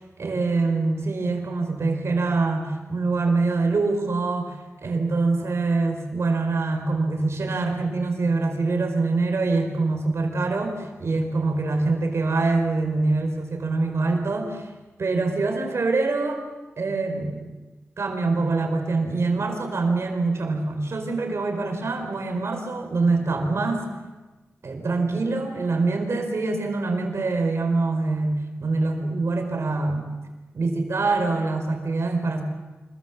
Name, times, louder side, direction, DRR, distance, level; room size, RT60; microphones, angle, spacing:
voice 1, 0.2-4.6 4.8-14.7 15.0-16.4 16.8-17.5 18.0-23.8 24.6-30.1 30.5-32.4, right 3 dB, 70° right, 4 dB, 4.8 m, -24 dB
26.5 x 22.5 x 7.4 m, 1.2 s
wide cardioid pair, 90°, 5 cm